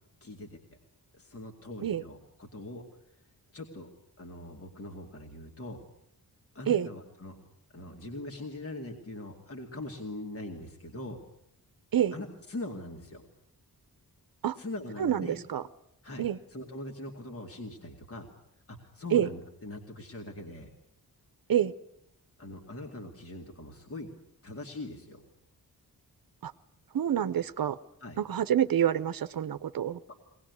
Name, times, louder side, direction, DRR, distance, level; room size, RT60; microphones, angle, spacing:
voice 1, 0.2-0.6 1.1-2.8 3.5-3.9 4.2-5.8 6.5-7.4 7.7-11.2 12.1-13.2 14.6-15.4 16.0-18.3 18.7-20.7 22.4-24.1 24.4-25.2 28.0-28.2 30.1-30.2, left 2 dB, 40° left, 2 dB, 2.4 m, -42 dB
voice 2, 15.0-15.6 16.2-16.4 19.1-19.3 21.5-21.7 26.4-26.5 26.9-27.8 28.2-30.0, right 10 dB, 65° right, 13 dB, 0.9 m, -27 dB
23.0 x 19.0 x 9.5 m, 0.76 s
wide cardioid pair, 160°, 37 cm